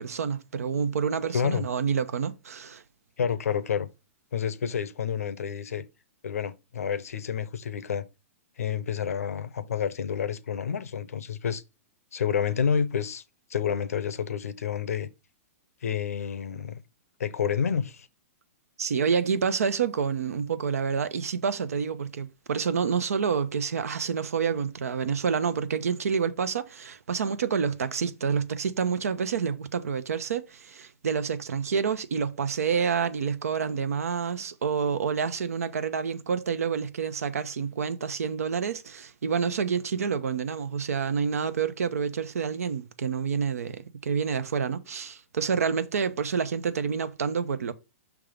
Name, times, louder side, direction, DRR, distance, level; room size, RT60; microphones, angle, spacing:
voice 1, 0.0-2.8 18.8-47.7, right 6 dB, 85° right, 0.7 m, -28 dB
voice 2, 1.3-1.7 3.2-3.9 4.3-5.8 6.2-8.0 8.6-11.6 12.1-13.2 13.5-15.1 15.8-16.8 17.2-18.1, left 7 dB, 85° left, 0.7 m, -29 dB
6.0 x 3.6 x 5.0 m
hypercardioid pair, 135°, 8 cm